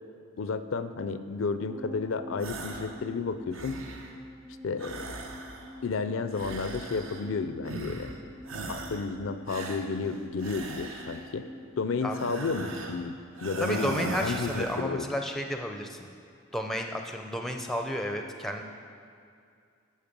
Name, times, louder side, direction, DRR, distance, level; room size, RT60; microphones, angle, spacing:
voice 1, 0.4-3.8 4.6-5.0 5.8-8.1 8.7-11.5 11.8-15.1, left 4 dB, 65° left, 11 dB, 0.4 m, -32 dB
sound 1, 1.7-14.2 14.5-14.6, left 1 dB, 50° right, 2.0 m, -48 dB
sound 2, 2.4-3.0 3.3-4.2 4.8-5.8 6.3-7.3 7.6-8.2 8.5-9.1 9.5-11.3 12.1-13.0 13.4-14.9, right 2 dB, 65° right, 0.9 m, -39 dB
voice 2, 13.6-16.1 16.5-18.6, equal, ahead, 3 dB, 0.5 m, -32 dB
13.5 x 5.4 x 5.3 m, 2.3 s
head